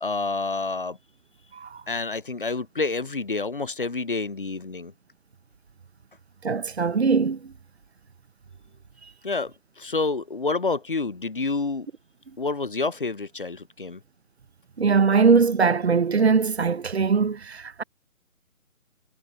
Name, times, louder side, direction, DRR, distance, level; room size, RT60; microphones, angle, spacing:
voice 1, 0.0-1.0 1.9-4.9 9.2-11.9 12.4-14.0, left 3 dB, 40° left, 0.5 m, -28 dB
voice 2, 6.4-7.4 14.8-17.8, right 5 dB, 50° right, 0.8 m, -21 dB
figure-of-eight pair, 150°, 42 cm